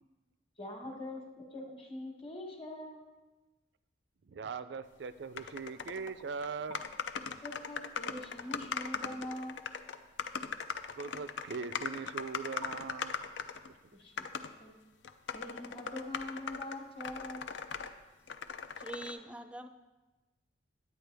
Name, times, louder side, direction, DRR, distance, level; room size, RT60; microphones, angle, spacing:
voice 1, 0.6-3.0 7.4-9.6 12.6-12.7 13.9-14.2 14.6-14.7 15.3-17.5, left 1 dB, 30° left, 1 dB, 1.3 m, -43 dB
voice 2, 4.2-6.8 11.0-13.2, right 5 dB, 65° right, 13 dB, 0.4 m, -40 dB
sound 1, 5.4-6.1 6.4-6.5 6.7-13.7 14.2-14.5 15.0-17.9 18.3-19.1, left 6 dB, 75° left, 0.5 m, -39 dB
voice 3, 18.8-19.7, right 1 dB, 5° right, 9 dB, 0.4 m, -43 dB
9.6 x 9.3 x 3.4 m, 1.2 s
head